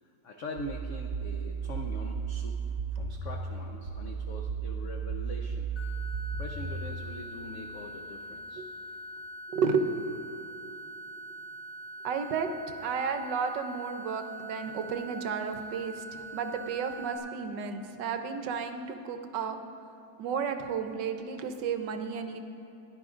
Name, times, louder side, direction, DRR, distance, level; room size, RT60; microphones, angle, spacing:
voice 1, 0.0-5.7 6.4-8.6, left 2 dB, 85° left, 2 dB, 0.6 m, -43 dB
sound 1, 0.6-7.0, right 6 dB, 55° right, 1.7 m, -34 dB
sound 2, 5.8-17.2, right 1 dB, 55° left, 1.6 m, -44 dB
voice 2, 9.5-9.9 12.0-12.5 12.8-19.6 20.2-22.4, right 6 dB, 70° right, 7 dB, 1.2 m, -32 dB
16.5 x 10.5 x 2.4 m, 2.8 s
omnidirectional pair, 2.1 m